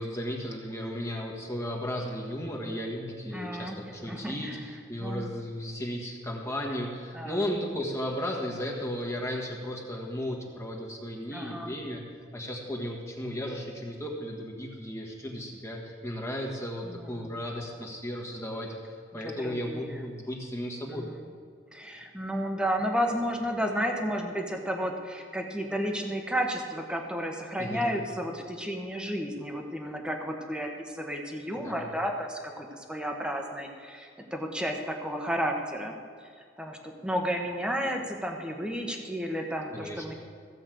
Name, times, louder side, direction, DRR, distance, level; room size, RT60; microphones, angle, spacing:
voice 1, 0.0-12.0 12.3-21.1 27.6-27.9 31.6-31.8 39.7-40.1, equal, 15° left, -2 dB, 1.5 m, -35 dB
voice 2, 3.3-3.8 4.1-5.3 7.1-7.5 11.3-11.7 16.8-17.4 19.2-19.9 20.9-21.3 21.7-35.9 36.6-40.1, equal, 5° right, 2 dB, 1.2 m, -32 dB
15.5 x 5.4 x 7.7 m, 2.2 s
head